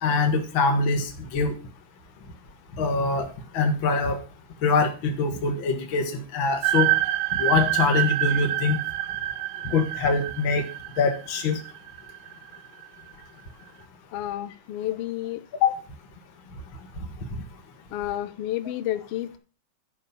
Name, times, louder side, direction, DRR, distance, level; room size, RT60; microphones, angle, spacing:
voice 1, 0.0-1.5 2.8-4.2 4.6-6.9 7.4-8.8 9.6-10.6 11.0-11.6 15.6-15.7, left 4 dB, 45° left, 3 dB, 1.9 m, -24 dB
sound 1, 6.6-12.8, right 16 dB, 80° right, 2.3 m, -27 dB
voice 2, 14.1-15.4 17.9-19.4, left 13 dB, 90° left, 13 dB, 1.3 m, -30 dB
11.5 x 5.5 x 6.9 m, 0.36 s
omnidirectional pair, 3.7 m